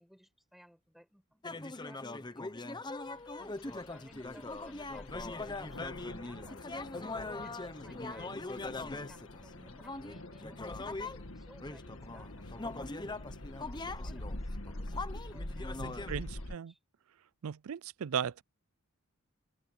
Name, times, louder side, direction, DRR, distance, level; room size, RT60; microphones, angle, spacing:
voice 1, 0.0-8.8 9.1-13.2 13.6-15.0 15.3-16.8, equal, ahead, 7.3 m, -61 dB
sound 1, 1.4-11.2 11.6-16.3, left 3 dB, 20° left, 0.9 m, -41 dB
sound 2, 3.2-16.6, left 1 dB, 65° left, 2.0 m, -45 dB
voice 2, 15.8-16.7 17.4-18.4, right 8 dB, 70° right, 0.4 m, -37 dB
open air
head